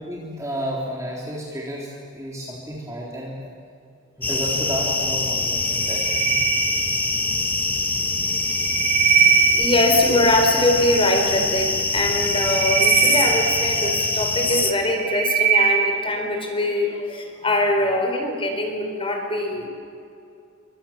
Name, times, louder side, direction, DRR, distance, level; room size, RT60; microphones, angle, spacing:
voice 1, 0.1-3.5 4.2-6.3 8.8-8.9, equal, 15° right, -4 dB, 3.6 m, -31 dB
sound 1, 4.2-14.7, left 2 dB, 10° left, 1.5 m, -24 dB
sound 2, 5.7-7.3 8.3-10.1 12.1-14.2 14.7-16.2, right 7 dB, 45° right, 4.1 m, -21 dB
voice 2, 9.5-19.7, left 1 dB, 25° left, 3 dB, 4.6 m, -22 dB
28.5 x 25.0 x 7.5 m, 2.5 s
head